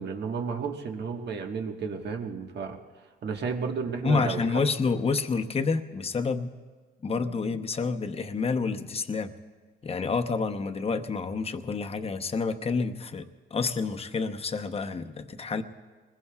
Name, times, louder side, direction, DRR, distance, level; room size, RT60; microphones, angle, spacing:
voice 1, 0.0-2.8 3.2-4.4, right 5 dB, 60° right, 3 dB, 1.5 m, -32 dB
voice 2, 4.0-6.5 7.0-9.3 9.8-15.6, left 4 dB, 30° left, 6 dB, 0.9 m, -29 dB
27.0 x 21.0 x 2.4 m, 1.5 s
cardioid pair, 90°, 20 cm